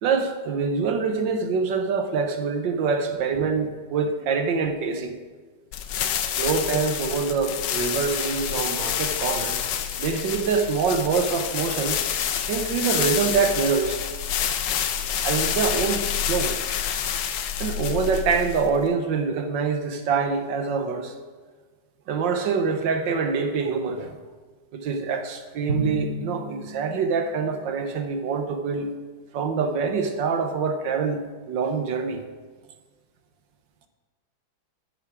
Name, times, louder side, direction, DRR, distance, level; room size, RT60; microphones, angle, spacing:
voice 1, 0.0-5.1 6.2-9.7 10.0-12.1 12.4-14.0 15.2-16.0 16.3-16.5 17.6-21.1 22.1-24.2 24.7-28.9 29.3-32.2, right 5 dB, 75° right, 6 dB, 1.6 m, -25 dB
sound 1, 5.7-18.9, left 9 dB, 75° left, 1.3 m, -28 dB
Drum, 25.7-27.4, equal, 45° right, 2.9 m, -31 dB
13.0 x 6.1 x 4.8 m, 1.4 s
omnidirectional pair, 2.0 m